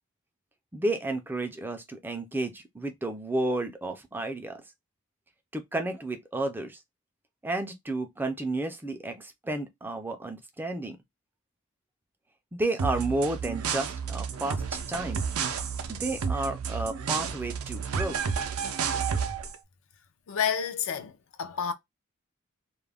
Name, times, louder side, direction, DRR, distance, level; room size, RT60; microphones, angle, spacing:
voice 1, 0.7-4.6 5.5-6.8 7.4-11.0 12.5-15.2 15.9-18.2, right 2 dB, 10° right, 0.3 m, -32 dB
sound 1, 12.8-19.6, right 6 dB, 90° right, 0.4 m, -31 dB
voice 2, 20.3-21.7, left 7 dB, 65° left, 0.4 m, -30 dB
2.3 x 2.1 x 3.3 m
head